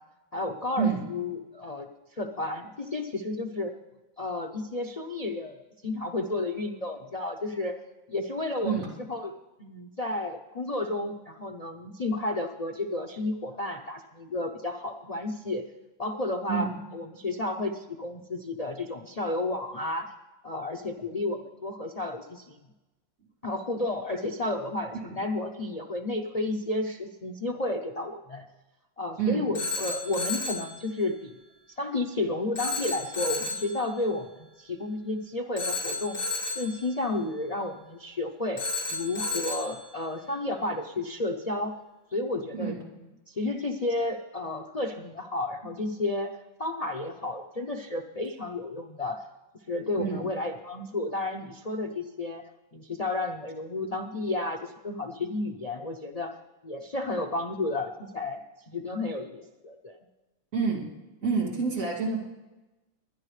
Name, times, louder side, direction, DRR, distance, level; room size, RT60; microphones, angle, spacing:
voice 1, 0.3-3.7 4.2-5.6 5.8-7.8 8.1-8.7 9.1-9.3 9.6-15.6 16.0-16.7 16.9-20.1 20.4-22.6 23.4-28.5 29.0-31.3 31.8-36.2 36.5-38.6 38.9-41.7 42.1-42.7 43.3-49.2 49.7-52.4 52.7-56.4 56.6-58.4 58.7-60.0, left 2 dB, 80° left, 5 dB, 0.3 m, -32 dB
Telephone, 29.5-30.7 32.5-33.7 35.6-36.7 38.6-39.7, left 3 dB, 30° left, 2.1 m, -32 dB
voice 2, 60.5-60.9 61.2-62.2, right 5 dB, 45° right, -2 dB, 2.8 m, -28 dB
23.5 x 10.0 x 3.2 m, 1.1 s
omnidirectional pair, 2.0 m